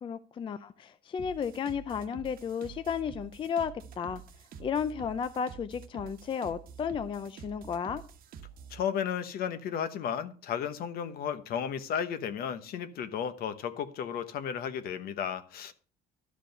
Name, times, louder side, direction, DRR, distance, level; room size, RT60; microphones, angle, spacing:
voice 1, 0.0-4.2 4.6-8.0, left 7 dB, 30° left, 0.4 m, -33 dB
sound 1, 1.2-8.8, right 7 dB, 55° right, 1.1 m, -48 dB
voice 2, 8.7-15.7, left 8 dB, 60° left, 1.0 m, -34 dB
12.5 x 5.0 x 6.5 m
cardioid pair, 155°, 18 cm